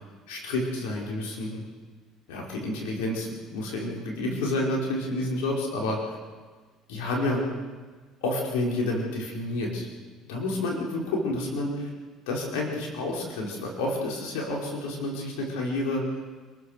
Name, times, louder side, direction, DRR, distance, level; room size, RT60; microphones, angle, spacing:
voice 1, 0.3-1.6 2.3-6.2 6.9-7.4 8.2-9.9 10.3-11.9 12.3-16.0, left 2 dB, 90° left, -1 dB, 5.1 m, -29 dB
28.0 x 14.5 x 6.7 m, 1.4 s
supercardioid pair, 95°, 0 cm